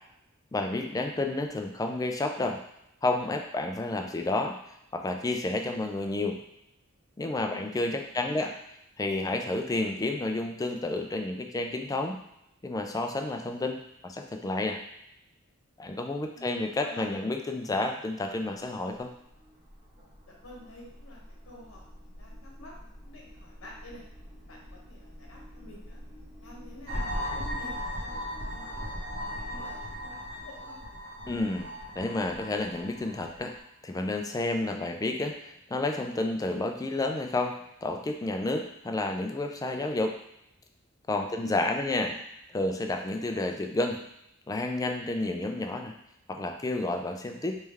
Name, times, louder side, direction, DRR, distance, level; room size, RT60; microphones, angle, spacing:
voice 1, 0.5-2.6 3.0-4.6 4.9-6.4 7.2-8.5 9.0-12.2 12.6-14.8 15.8-19.1 31.3-31.7 32.0-33.5 33.8-40.1 41.1-42.1 42.5-44.0 44.5-45.9 46.3-47.6, left 2 dB, 15° left, 4 dB, 0.3 m, -30 dB
voice 2, 7.4-7.8 8.1-8.5 16.3-17.0 20.2-24.0 24.5-26.0 26.4-30.8 41.3-42.2, left 2 dB, 65° left, -2 dB, 1.0 m, -49 dB
sound 1, 18.5-30.1, equal, 45° right, 1.4 m, -49 dB
sound 2, 26.9-33.6, equal, 85° right, 1.4 m, -37 dB
3.3 x 3.2 x 3.4 m, 0.82 s
head